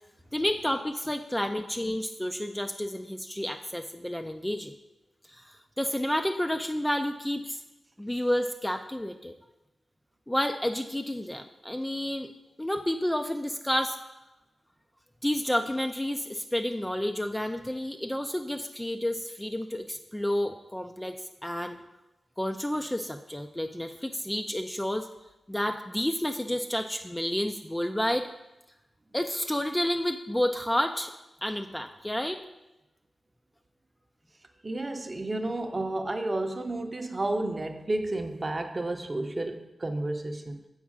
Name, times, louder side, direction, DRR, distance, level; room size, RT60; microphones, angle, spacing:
voice 1, 0.3-4.7 5.3-7.6 8.0-9.3 10.3-12.3 12.6-14.0 15.2-21.2 21.4-21.8 22.4-25.1 25.5-28.3 29.1-31.1 31.4-32.4, left 1 dB, 10° left, 6 dB, 0.3 m, -30 dB
voice 2, 34.6-40.6, right 2 dB, 30° right, 6 dB, 0.6 m, -31 dB
7.3 x 4.7 x 4.7 m, 0.98 s
wide cardioid pair, 95°, 0 cm